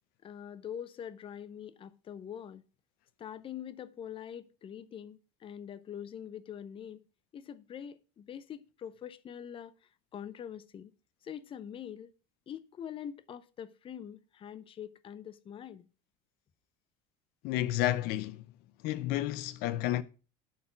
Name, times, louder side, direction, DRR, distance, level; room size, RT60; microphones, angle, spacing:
voice 1, 0.2-2.6 3.2-7.0 7.3-9.7 10.1-10.9 11.2-12.1 12.5-15.9, left 9 dB, 35° left, 0.7 m, -44 dB
voice 2, 17.4-18.4 18.8-20.0, left 14 dB, 70° left, 0.6 m, -31 dB
11.0 x 4.2 x 5.9 m
supercardioid pair, 115°, 16 cm